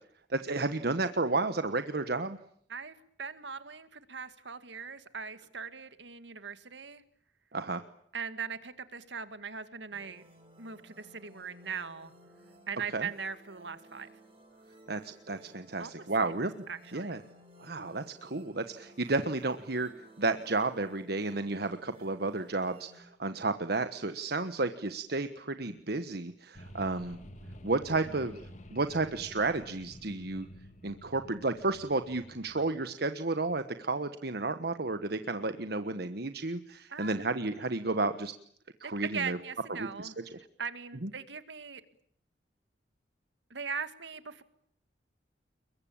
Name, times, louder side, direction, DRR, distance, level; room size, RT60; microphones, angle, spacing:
voice 1, 0.3-2.4 7.5-7.8 12.9-13.1 14.9-16.6 16.9-17.2 17.6-19.9 20.2-27.2 27.6-28.4 28.7-30.4 30.8-38.3 38.8-39.4 39.8-40.1 41.0-41.1, right 3 dB, 60° right, 10 dB, 1.3 m, -32 dB
voice 2, 2.7-7.0 8.1-10.2 10.6-12.1 12.7-14.1 15.8-16.3 16.7-17.2 27.9-28.2 36.9-37.2 38.8-40.2 40.6-41.8 43.5-44.4, right 6 dB, 85° right, 11 dB, 2.0 m, -40 dB
sound 1, 9.9-23.0, right 1 dB, 30° right, 7.2 m, -57 dB
sound 2, 26.5-32.8, equal, 45° left, 2.3 m, -50 dB
29.5 x 22.5 x 8.7 m, 0.66 s
head